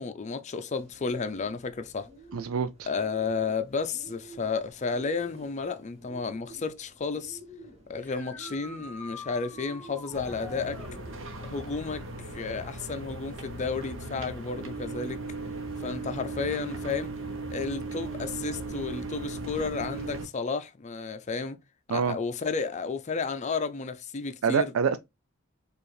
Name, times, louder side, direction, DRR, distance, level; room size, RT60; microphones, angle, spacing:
voice 1, 0.0-2.1 2.9-7.4 7.9-10.8 11.4-15.2 15.8-17.1 17.5-21.6 21.9-24.7, left 4 dB, 35° left, 0.4 m, -32 dB
Bird, 0.8-13.5, right 1 dB, 30° right, 1.3 m, -52 dB
voice 2, 2.3-2.9 21.9-22.2 24.4-25.0, right 6 dB, 85° right, 0.4 m, -26 dB
sound 1, 8.0-10.9 14.3-14.4 16.4-16.5 22.7-22.8, left 2 dB, 10° left, 1.1 m, -45 dB
sound 2, 10.1-20.3, right 2 dB, 65° right, 0.9 m, -37 dB
4.7 x 2.4 x 3.2 m
head